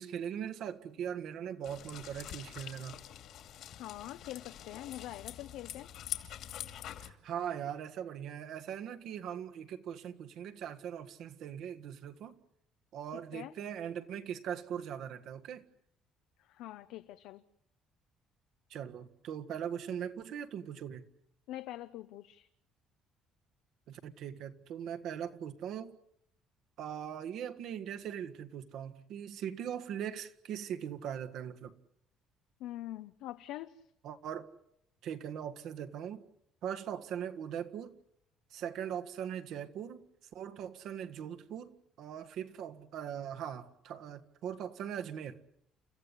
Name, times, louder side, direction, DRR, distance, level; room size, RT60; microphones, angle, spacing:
voice 1, 0.0-3.0 7.0-12.4 12.9-15.6 18.7-21.1 23.9-25.9 26.8-31.7 34.0-34.5 35.0-36.2 36.6-38.0 38.5-40.0 40.3-45.4, right 9 dB, 60° right, 1.7 m, -40 dB
sound 1, 1.6-7.1, left 11 dB, 60° left, 2.6 m, -45 dB
voice 2, 3.8-5.9 13.3-13.5 16.4-17.4 21.5-22.5 32.6-33.8, left 14 dB, 80° left, 0.9 m, -44 dB
30.0 x 14.5 x 9.9 m
cardioid pair, 140°, 0 cm